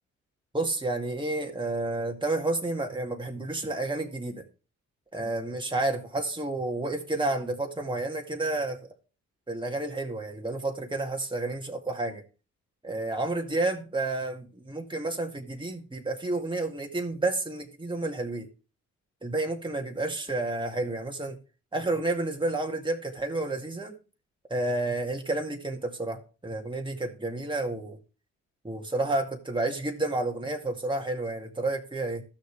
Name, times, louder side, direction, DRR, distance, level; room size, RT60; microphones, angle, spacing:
voice 1, 0.5-4.4 5.1-8.9 9.5-12.2 12.8-18.5 19.2-21.4 21.7-24.0 24.5-28.0 28.6-32.2, right 2 dB, 15° right, 2.1 m, -30 dB
14.5 x 6.5 x 3.4 m
hypercardioid pair, 45°, 38 cm